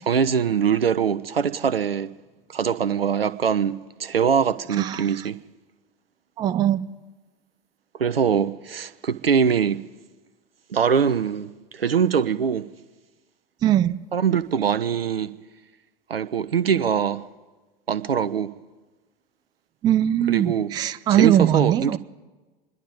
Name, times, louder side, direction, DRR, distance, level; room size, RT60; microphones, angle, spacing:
voice 1, 0.1-2.1 2.5-3.7 4.0-5.4 8.0-9.8 10.7-12.7 14.1-15.3 16.1-17.2 17.9-18.5 20.3-20.7 21.1-22.0, right 7 dB, 80° right, 0.7 m, -22 dB
voice 2, 6.4-6.8 13.6-14.0 19.8-22.0, right 11 dB, 15° right, 0.4 m, -20 dB
27.0 x 11.0 x 4.0 m
figure-of-eight pair, 90°, 29 cm